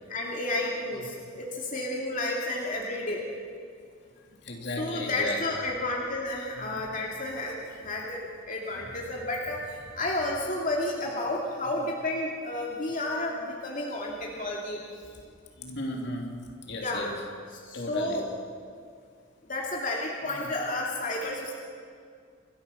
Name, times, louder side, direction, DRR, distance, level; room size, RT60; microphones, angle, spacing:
voice 1, 0.1-3.2 4.8-14.8 16.8-17.0 17.5-18.3 19.5-21.5, left 2 dB, 40° left, -2 dB, 2.7 m, -31 dB
voice 2, 4.4-5.4 6.6-6.8 8.8-9.0 15.6-16.4 16.6-17.1 17.7-18.2 20.4-20.5, left 1 dB, 60° left, 1 dB, 3.1 m, -35 dB
28.0 x 13.5 x 7.1 m, 2.1 s
head